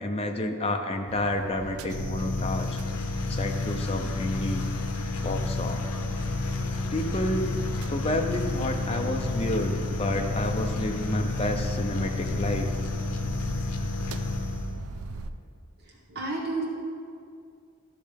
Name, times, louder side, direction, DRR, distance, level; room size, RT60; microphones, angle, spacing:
voice 1, 0.0-2.7 3.3-4.6 5.2-5.9 6.9-7.5 7.9-12.7, left 1 dB, 25° left, 3 dB, 0.5 m, -30 dB
sound 1, 1.1-15.3, right 3 dB, 75° right, 0.4 m, -41 dB
sound 2, 1.9-14.9, left 3 dB, 85° left, 0.7 m, -30 dB
Wind instrument woodwind instrument, 6.1-13.1, left 2 dB, 55° left, 1.1 m, -48 dB
voice 2, 15.8-16.7, right 2 dB, 45° right, -3 dB, 1.4 m, -32 dB
12.5 x 6.3 x 3.5 m, 2.4 s
head